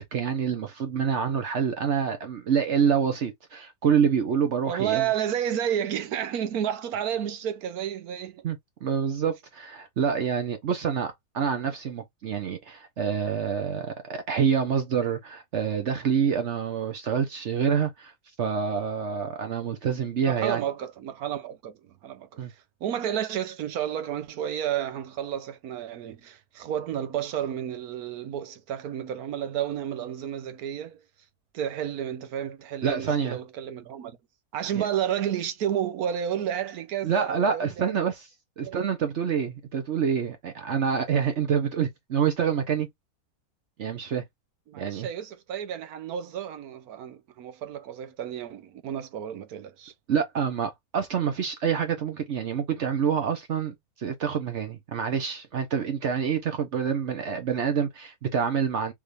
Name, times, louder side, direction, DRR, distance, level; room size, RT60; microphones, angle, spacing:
voice 1, 0.0-5.1 8.4-18.1 18.4-20.6 22.4-22.5 32.8-33.4 34.7-34.8 37.0-38.3 38.6-42.9 43.8-44.2 44.7-45.1 50.1-58.9, right 7 dB, 60° right, 1.0 m, -27 dB
voice 2, 4.7-8.5 20.2-31.0 31.5-34.2 34.5-37.9 38.6-38.8 44.7-49.9, right 10 dB, 85° right, 1.3 m, -31 dB
3.5 x 3.2 x 2.5 m
omnidirectional pair, 1.5 m